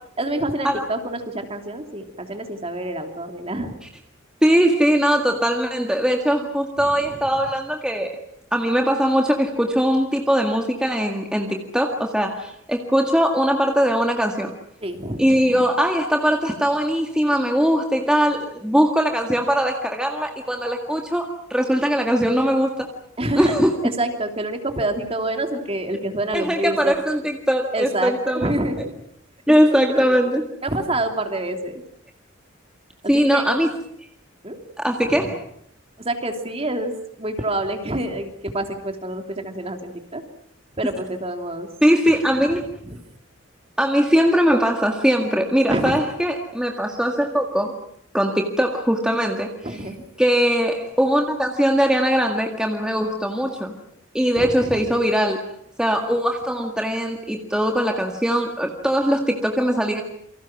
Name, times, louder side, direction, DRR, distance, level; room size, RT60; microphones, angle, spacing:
voice 1, 0.2-3.7 6.8-7.2 14.8-15.2 23.2-23.5 23.8-26.9 27.7-28.9 29.5-29.6 29.9-30.1 30.6-31.8 33.0-33.4 34.4-34.6 35.0-35.3 36.0-36.9 37.2-40.2 40.8-41.7 42.5-43.0 45.7-46.0 49.6-50.0 54.4-54.9, right 1 dB, 30° right, 5 dB, 3.0 m, -27 dB
voice 2, 4.4-8.2 8.5-14.5 15.2-21.3 21.5-22.9 23.4-23.7 26.3-28.5 29.5-30.4 33.1-33.7 34.8-35.4 41.8-42.6 43.8-47.7 48.1-49.5 50.2-53.7 54.1-55.4 55.8-60.0, equal, 5° right, 2 dB, 1.9 m, -20 dB
28.5 x 25.0 x 6.1 m, 0.70 s
head